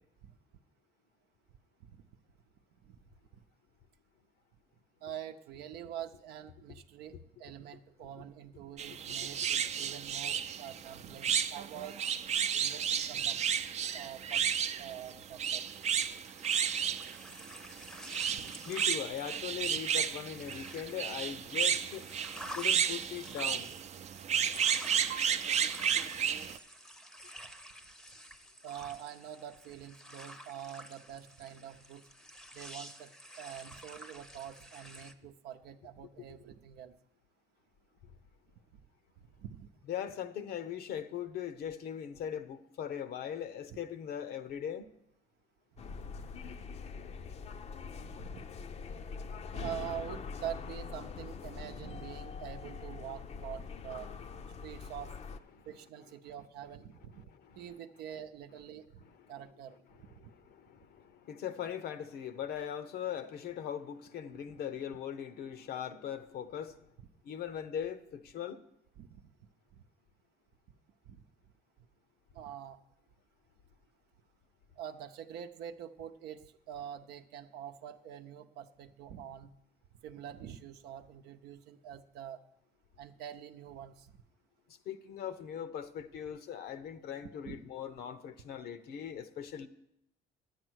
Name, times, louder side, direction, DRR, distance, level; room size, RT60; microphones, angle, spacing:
voice 1, 5.0-12.0 12.5-13.4 13.9-14.5 14.8-15.7 18.2-18.5 25.0-25.3 28.6-32.0 32.5-33.1 33.4-36.9 39.4-39.7 45.9-46.5 48.2-48.5 49.5-54.1 54.6-55.2 55.7-57.2 57.5-59.0 59.3-59.8 60.2-60.3 67.0-67.1 69.0-69.2 71.1-71.2 72.3-72.8 74.8-79.5 80.0-82.4 83.0-84.1 87.4-87.6, right 10 dB, 80° right, 0.7 m, -45 dB
sound 1, 8.8-26.6, right 8 dB, 40° right, 0.5 m, -33 dB
sound 2, 15.7-35.1, equal, 5° left, 0.7 m, -50 dB
voice 2, 18.7-22.1 22.5-23.7 36.2-36.3 39.9-44.9 54.5-54.6 55.5-55.7 57.2-57.7 59.9-66.8 67.2-68.6 84.9-89.7, left 9 dB, 65° left, 0.8 m, -40 dB
sound 3, 45.8-55.4, left 5 dB, 40° left, 0.6 m, -43 dB
10.5 x 8.5 x 6.2 m
cardioid pair, 110°, 17 cm